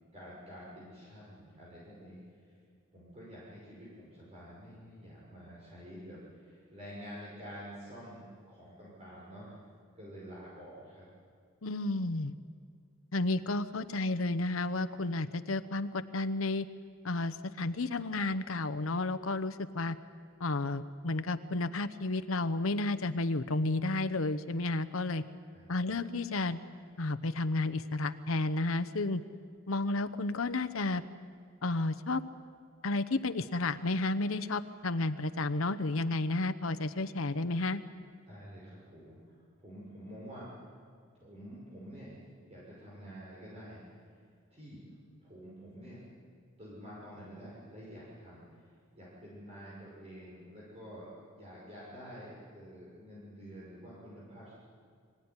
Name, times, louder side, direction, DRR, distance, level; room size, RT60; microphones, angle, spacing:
voice 1, 0.1-2.6 2.9-9.6 10.0-11.0 25.5-26.1 38.3-40.7 41.1-42.2 42.5-43.8 44.1-44.2 44.5-44.8 45.2-46.0 46.6-54.5, equal, 30° right, -7 dB, 5.8 m, -49 dB
voice 2, 11.6-12.3 13.1-16.7 17.0-20.0 20.4-25.2 25.7-26.6 27.0-29.2 29.7-31.0 31.6-32.2 32.8-37.8, left 2 dB, 70° left, 11 dB, 0.9 m, -32 dB
24.5 x 16.0 x 9.8 m, 2.1 s
head